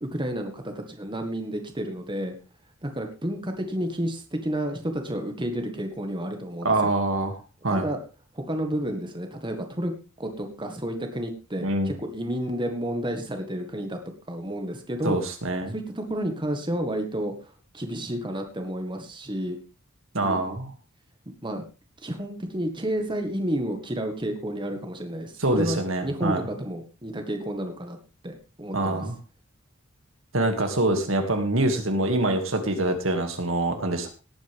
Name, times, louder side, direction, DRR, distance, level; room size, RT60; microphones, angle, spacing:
voice 1, 0.0-2.4 2.8-6.7 7.7-8.0 8.3-9.9 10.2-14.0 14.3-15.2 15.7-19.6 20.2-20.6 21.4-21.6 22.0-28.0 28.2-29.1, right 1 dB, 25° right, 5 dB, 1.7 m, -31 dB
voice 2, 6.6-7.4 7.6-7.9 11.6-11.9 15.0-15.7 20.1-20.7 25.4-26.4 28.7-29.2 30.3-34.1, right 2 dB, 70° right, 5 dB, 2.4 m, -25 dB
18.0 x 9.2 x 3.6 m, 0.32 s
head